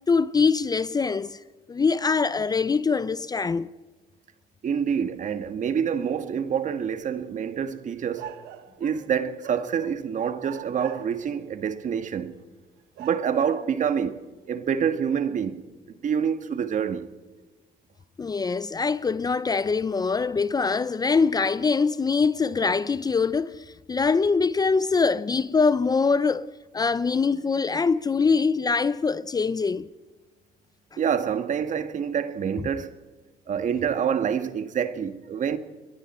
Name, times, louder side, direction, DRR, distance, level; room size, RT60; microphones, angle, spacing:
voice 1, 0.1-1.4 1.7-3.7 18.2-29.9, left 4 dB, 25° left, 0.6 m, -23 dB
voice 2, 4.6-8.3 8.8-12.3 13.0-14.2 14.5-15.6 16.0-17.1 31.0-32.9 33.5-35.6, right 7 dB, 50° right, 1.6 m, -27 dB
sound 1, 6.7-6.8 8.1-9.2 9.4-10.0 10.4-11.4 12.1-12.2 13.0-13.8, right 11 dB, 80° right, 1.5 m, -42 dB
29.0 x 21.5 x 4.4 m
cardioid pair, 110°, 17 cm